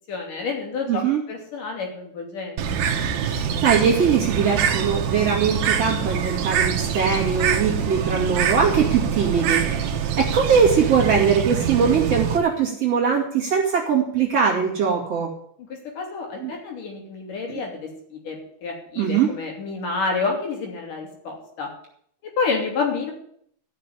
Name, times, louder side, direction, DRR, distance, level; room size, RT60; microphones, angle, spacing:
voice 1, 0.1-2.8 15.7-21.7 22.2-23.1, left 4 dB, 55° left, 1 dB, 4.2 m, -29 dB
voice 2, 0.9-1.2 3.2-15.3 16.4-16.5 19.0-19.3, right 6 dB, 45° right, -2 dB, 3.0 m, -21 dB
Bird, 2.6-12.4, right 7 dB, 75° right, 3.1 m, -24 dB
13.5 x 6.7 x 10.0 m, 0.66 s
omnidirectional pair, 4.5 m